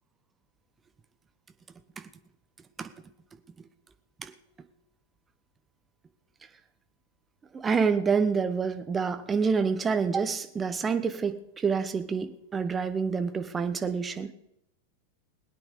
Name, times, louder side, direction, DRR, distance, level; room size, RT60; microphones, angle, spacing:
voice 1, 7.5-14.3, right 5 dB, 20° right, 9 dB, 1.2 m, -27 dB
21.0 x 9.2 x 5.2 m, 0.81 s
figure-of-eight pair, 90°, 0 cm